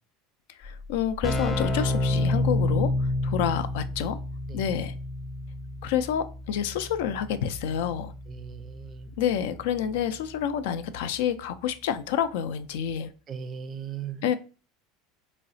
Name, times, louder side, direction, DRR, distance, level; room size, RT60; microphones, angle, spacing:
voice 1, 0.6-4.2 4.5-4.9 5.8-8.1 9.2-13.1 14.2-14.4, left 9 dB, 80° left, 0.3 m, -28 dB
Keyboard (musical), 0.6-0.7 0.9-11.6, left 1 dB, 20° left, 0.7 m, -31 dB
voice 2, 8.3-9.1 13.3-14.3, right 7 dB, 30° right, 0.4 m, -38 dB
3.7 x 2.0 x 2.6 m
supercardioid pair, 120°, 0 cm